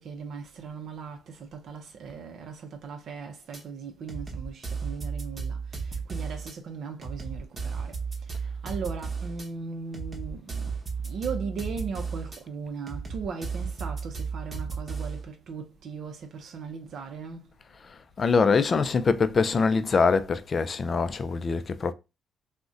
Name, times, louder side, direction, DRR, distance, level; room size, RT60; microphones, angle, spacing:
voice 1, 0.0-7.9 8.6-10.7 11.0-17.4, right 5 dB, 65° right, 0.5 m, -38 dB
sound 1, 3.5-3.6 4.1-6.5 7.0-9.5 9.9-12.4 12.9-15.2, right 5 dB, 30° right, 0.9 m, -34 dB
voice 2, 18.2-21.9, left 4 dB, 40° left, 0.3 m, -23 dB
2.5 x 2.1 x 3.7 m
cardioid pair, 90°, 0 cm